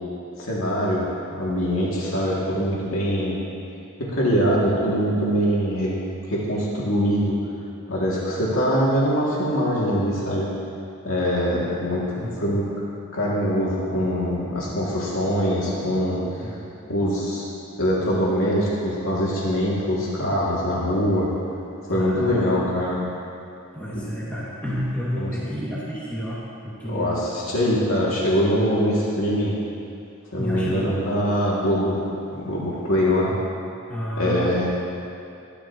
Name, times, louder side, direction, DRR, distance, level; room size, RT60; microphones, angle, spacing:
voice 1, 0.4-1.1 1.3-3.4 4.0-5.9 6.3-7.4 7.9-10.5 11.0-12.7 13.1-16.5 16.9-17.5 17.8-21.3 21.8-23.0 23.9-24.1 25.2-25.3 26.9-29.6 30.3-32.0 32.3-33.3 34.2-34.6, equal, 85° left, -7 dB, 2.4 m, -23 dB
voice 2, 12.2-12.5 16.4-16.7 21.9-22.6 23.7-27.2 30.4-30.9 33.9-34.5, equal, 10° left, -9 dB, 2.1 m, -30 dB
22.0 x 12.0 x 3.0 m, 2.6 s
head